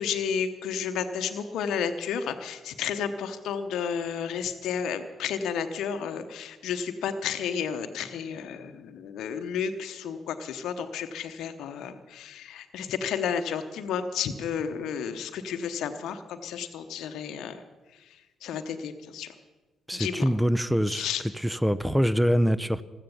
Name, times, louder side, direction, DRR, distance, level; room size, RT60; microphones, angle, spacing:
voice 1, 0.0-17.6 18.4-19.3 19.9-20.2 20.9-21.2, left 7 dB, 65° left, 0.9 m, -32 dB
voice 2, 19.9-21.1 21.3-22.8, equal, 5° right, 0.7 m, -24 dB
15.5 x 13.0 x 7.0 m
hypercardioid pair, 45°, 0 cm